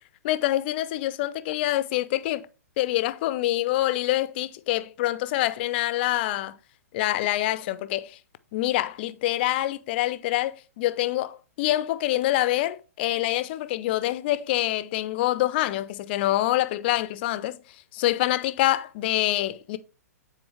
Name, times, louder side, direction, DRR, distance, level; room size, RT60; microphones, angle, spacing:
voice 1, 0.2-2.5 2.8-6.6 6.9-8.2 8.5-17.6 17.9-19.8, left 15 dB, 40° left, 0.5 m, -26 dB
9.1 x 4.3 x 3.2 m
figure-of-eight pair, 115°, 9 cm